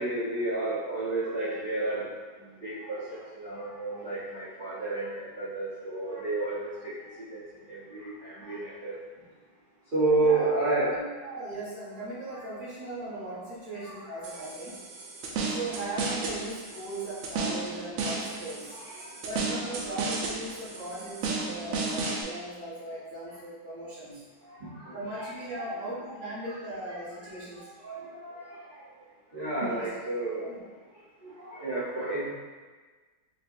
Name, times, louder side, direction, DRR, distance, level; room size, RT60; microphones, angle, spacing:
voice 1, 0.0-2.1 2.6-6.9 7.3-7.4 7.7-9.0 9.9-11.0 13.8-14.1 18.7-19.1 24.4-25.3 25.6-25.7 26.9-28.8 29.3-30.5 31.2-32.3, right 2 dB, 55° right, -12 dB, 0.5 m, -31 dB
voice 2, 10.2-10.5 10.9-14.8 15.4-18.8 19.2-24.2 24.9-27.7 29.7-29.9 30.4-30.6, right 1 dB, 10° left, -9 dB, 0.8 m, -38 dB
sound 1, 14.2-22.2, right 3 dB, 80° right, 1.4 m, -34 dB
5.1 x 2.5 x 2.6 m, 1.4 s
omnidirectional pair, 2.2 m